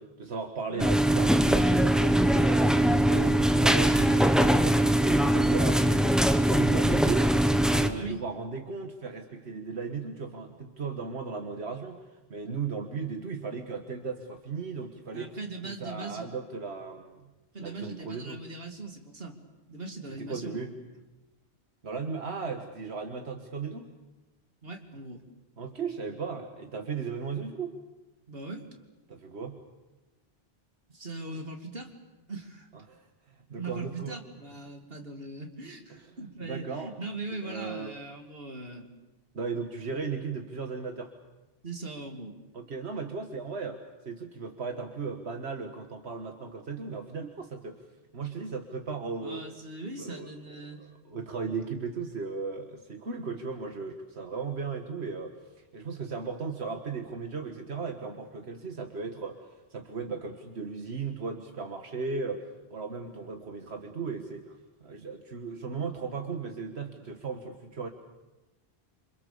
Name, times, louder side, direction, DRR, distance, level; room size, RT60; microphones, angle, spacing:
voice 1, 0.0-7.4 7.7-12.0 12.3-15.3 15.6-17.3 17.6-18.4 20.1-20.8 21.8-23.9 25.6-27.8 29.1-29.6 31.3-31.4 32.7-33.1 33.5-34.2 36.1-36.9 37.3-38.0 39.3-41.1 42.5-47.8 48.1-49.5 50.0-50.3 50.8-55.3 55.7-62.4 62.7-64.6 64.8-67.9, right 4 dB, 85° right, 4 dB, 1.8 m, -36 dB
sound 1, 0.8-7.9, right 1 dB, ahead, 1.2 m, -22 dB
voice 2, 7.9-8.2 15.1-16.3 17.5-19.4 19.7-20.7 24.6-25.2 28.3-28.7 30.9-31.9 32.3-32.7 33.5-38.9 41.6-42.3 49.2-50.8, right 3 dB, 65° right, 3 dB, 3.0 m, -40 dB
27.5 x 26.5 x 7.0 m, 1.1 s
omnidirectional pair, 1.1 m